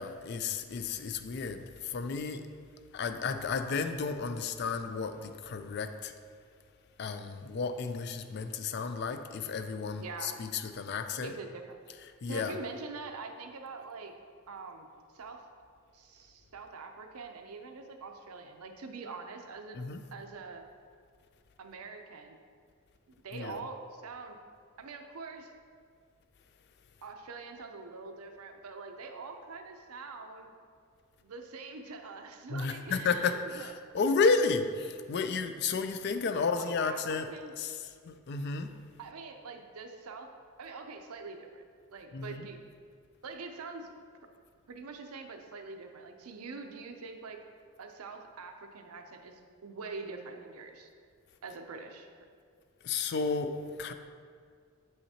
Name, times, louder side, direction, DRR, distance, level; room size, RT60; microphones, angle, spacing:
voice 1, 0.0-2.5 2.9-6.1 7.0-11.3 12.2-12.6 19.7-20.0 23.3-23.6 32.5-37.3 37.6-38.7 42.1-42.4 52.8-53.9, left 4 dB, 50° left, 9 dB, 0.3 m, -32 dB
voice 2, 10.0-10.3 11.2-11.6 12.3-14.1 14.5-14.9 15.1-15.4 15.9-19.8 20.1-20.6 21.6-22.4 23.2-24.4 24.8-25.5 27.0-30.5 31.2-34.2 36.3-37.5 39.0-40.3 40.6-41.6 41.9-42.6 43.2-43.9 44.7-47.4 47.8-50.9 51.4-52.1, right 4 dB, 90° right, 5 dB, 0.6 m, -44 dB
7.9 x 5.6 x 2.8 m, 2.1 s
head